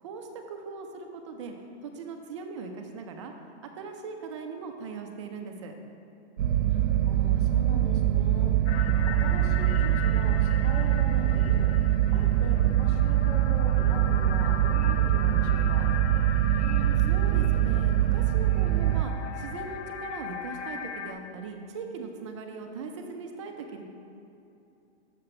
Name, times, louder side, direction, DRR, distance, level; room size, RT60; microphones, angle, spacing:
voice 1, 0.0-1.5 1.8-3.3 3.8-5.7 16.6-23.8, right 4 dB, 25° right, 4 dB, 0.4 m, -39 dB
sound 1, 6.4-19.0, right 12 dB, 80° right, 0.7 m, -23 dB
voice 2, 6.7-8.9 9.2-11.7 12.1-15.9, left 2 dB, 45° left, 1 dB, 1.1 m, -40 dB
sound 2, 8.7-21.1, left 7 dB, 75° left, 0.6 m, -39 dB
6.7 x 5.8 x 4.3 m, 2.8 s
hypercardioid pair, 155°, 34 cm